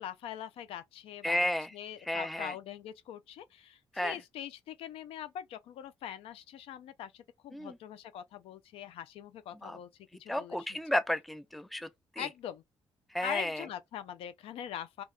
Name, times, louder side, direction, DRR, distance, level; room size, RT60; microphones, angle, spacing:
voice 1, 0.0-9.9 10.2-10.8 12.2-12.6 13.2-15.0, left 10 dB, 85° left, 0.4 m, -43 dB
voice 2, 1.2-1.7 2.1-2.5 3.9-4.2 7.5-7.8 9.6-9.8 10.3-11.9 12.2-12.3 13.1-13.7, left 1 dB, ahead, 0.3 m, -32 dB
2.8 x 2.1 x 2.3 m
cardioid pair, 105°, 9 cm